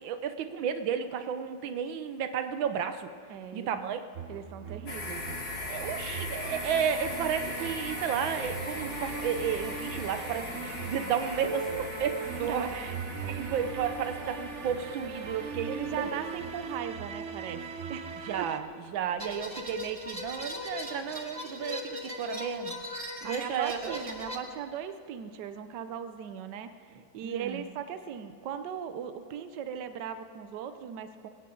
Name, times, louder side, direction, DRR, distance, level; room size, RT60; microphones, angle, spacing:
voice 1, 0.0-3.1 3.5-4.0 5.6-12.9 13.3-16.2 18.3-18.6 18.9-22.8 23.2-24.0 27.2-27.6, right 7 dB, 90° right, 9 dB, 1.6 m, -32 dB
voice 2, 3.3-3.9 4.3-5.3 12.4-12.7 15.6-18.5 23.2-31.3, right 8 dB, 70° right, 10 dB, 1.3 m, -39 dB
sound 1, 4.1-18.6, right 6 dB, 50° right, 0.9 m, -40 dB
sound 2, 4.9-16.8, left 2 dB, 65° left, 3.1 m, -40 dB
sound 3, 19.2-24.4, left 1 dB, 20° right, 1.2 m, -39 dB
21.0 x 17.0 x 3.8 m, 2.5 s
omnidirectional pair, 2.1 m